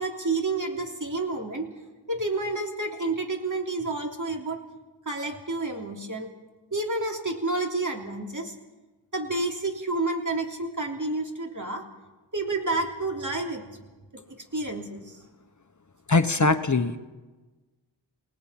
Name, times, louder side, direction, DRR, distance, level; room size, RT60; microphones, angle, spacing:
voice 1, 0.0-1.7 2.1-4.6 5.0-6.3 6.7-8.5 9.1-11.8 12.3-13.7 14.1-15.1, right 2 dB, 40° right, 2 dB, 3.3 m, -30 dB
voice 2, 16.1-17.0, left 3 dB, 40° left, 8 dB, 1.1 m, -21 dB
28.5 x 18.5 x 5.8 m, 1.2 s
wide cardioid pair, 95°, 44 cm